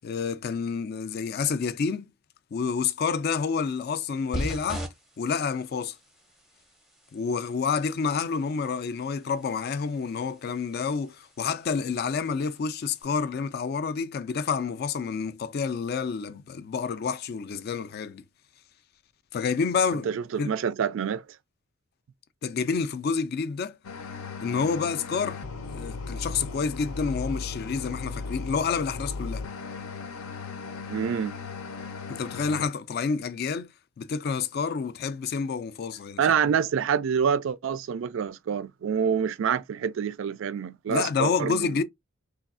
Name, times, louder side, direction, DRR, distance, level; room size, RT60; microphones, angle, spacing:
voice 1, 0.0-2.1 2.5-4.9 5.2-6.0 7.1-18.2 19.3-20.1 20.4-20.5 22.4-23.8 24.4-29.5 32.1-33.7 34.0-36.2 40.9-41.8, left 5 dB, 45° left, 0.3 m, -29 dB
sound 1, 4.3-13.0, right 1 dB, ahead, 0.5 m, -42 dB
voice 2, 20.1-21.2 30.9-31.3 36.2-41.8, right 7 dB, 65° right, 0.3 m, -27 dB
sound 2, 23.8-32.7, left 4 dB, 85° left, 0.6 m, -37 dB
3.3 x 2.3 x 2.4 m
head